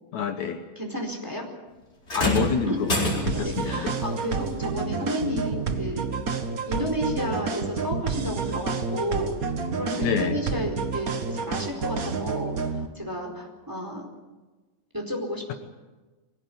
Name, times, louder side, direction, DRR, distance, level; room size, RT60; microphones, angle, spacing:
voice 1, 0.1-0.6 2.1-3.9 9.9-10.4, left 8 dB, 70° left, 6 dB, 2.4 m, -28 dB
voice 2, 0.8-1.5 2.7-2.8 3.3-6.1 6.7-9.4 9.7-14.1 14.9-15.5, equal, 5° right, 1 dB, 4.3 m, -32 dB
sound 1, 2.1-3.6 5.1-5.2 6.1-6.2, equal, 20° left, 4.8 m, -27 dB
sound 2, 3.3-12.9, right 5 dB, 50° right, 1.1 m, -29 dB
24.0 x 16.5 x 9.6 m, 1.2 s
omnidirectional pair, 3.6 m